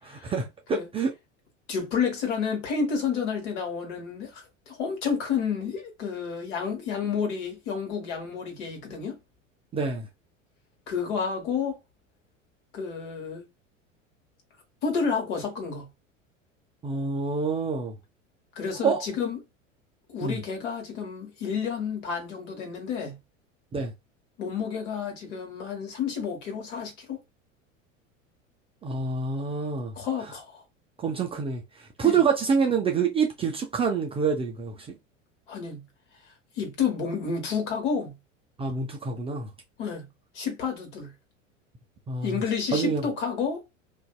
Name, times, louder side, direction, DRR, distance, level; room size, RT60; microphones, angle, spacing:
voice 1, 0.0-1.1 9.7-10.1 16.8-17.9 18.8-19.0 20.2-20.4 23.7-23.9 28.8-29.9 31.0-34.7 38.6-39.5 42.1-42.4 42.7-43.0, right 5 dB, 15° right, 0.3 m, -27 dB
voice 2, 1.7-9.2 10.9-11.8 12.7-13.5 14.8-15.9 18.5-19.4 20.1-23.2 24.4-27.2 30.0-30.6 32.0-32.2 35.5-35.8 36.6-38.2 39.8-40.0 40.3-41.1 42.2-43.6, left 6 dB, 60° left, 1.3 m, -30 dB
2.5 x 2.2 x 2.2 m
figure-of-eight pair, 80°, 39 cm